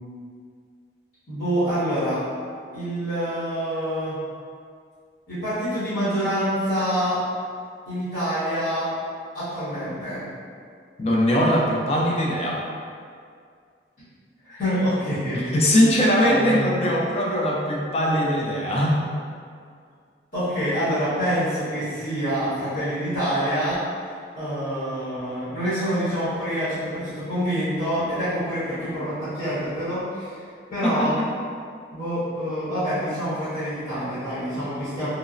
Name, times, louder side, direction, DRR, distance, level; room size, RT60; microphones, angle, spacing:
voice 1, 1.3-2.2 2.7-4.2 5.3-7.2 7.8-8.9 9.3-10.3 14.4-15.7 16.2-16.7 20.3-23.8 24.3-30.3 30.7-31.1 31.9-35.1, equal, 65° left, -14 dB, 1.0 m, -26 dB
voice 2, 11.0-12.6 15.3-19.0 30.8-31.2, equal, 35° left, -3 dB, 0.4 m, -21 dB
2.9 x 2.0 x 2.5 m, 2.2 s
head